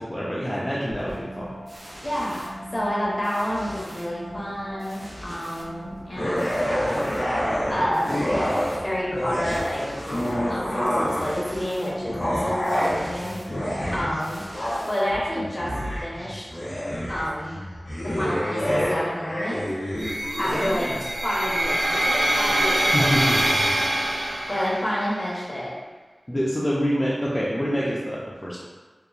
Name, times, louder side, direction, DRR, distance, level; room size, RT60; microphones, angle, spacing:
voice 1, 0.0-1.6 13.8-14.1 20.5-21.0 22.5-22.6 22.9-23.7 24.5-24.6 26.3-28.7, equal, 20° left, -8 dB, 0.4 m, -27 dB
sound 1, 0.9-15.5, equal, 65° right, 0.9 m, -40 dB
voice 2, 2.0-7.1 7.7-9.8 10.5-13.4 13.9-14.4 14.9-15.7 16.0-16.4 17.1-17.6 18.0-19.6 20.4-20.9 21.2-23.4 24.5-25.7, equal, 45° left, -6 dB, 0.8 m, -29 dB
sound 2, 6.1-8.8 9.1-11.5 12.0-20.6, equal, 90° left, 0.8 m, -27 dB
sound 3, 20.0-25.0, right 1 dB, 85° right, 0.3 m, -24 dB
2.9 x 2.2 x 2.3 m, 1.3 s
wide cardioid pair, 65°, 0 cm